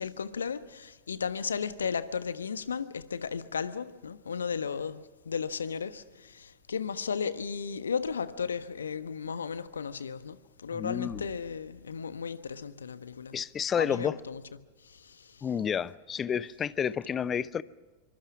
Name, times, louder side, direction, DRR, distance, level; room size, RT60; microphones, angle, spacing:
voice 1, 0.0-13.4 13.8-14.4 14.8-15.5, left 6 dB, 70° left, 1.2 m, -35 dB
voice 2, 10.7-11.3 13.3-14.2 15.4-17.6, left 8 dB, 25° left, 0.7 m, -30 dB
26.5 x 24.5 x 6.1 m
figure-of-eight pair, 90°, 0 cm